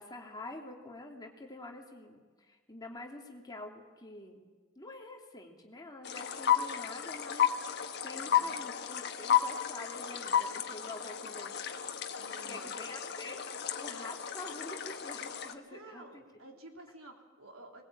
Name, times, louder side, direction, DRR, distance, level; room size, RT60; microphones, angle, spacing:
voice 1, 0.0-4.5 4.8-11.6 12.5-16.6, left 2 dB, 20° left, 1 dB, 2.8 m, -47 dB
sound 1, 6.0-15.5, left 9 dB, 50° left, 1.4 m, -33 dB
voice 2, 8.1-8.7 12.2-12.7 15.7-17.8, right 2 dB, 85° right, 2 dB, 3.5 m, -52 dB
21.0 x 20.0 x 8.7 m, 1.4 s
head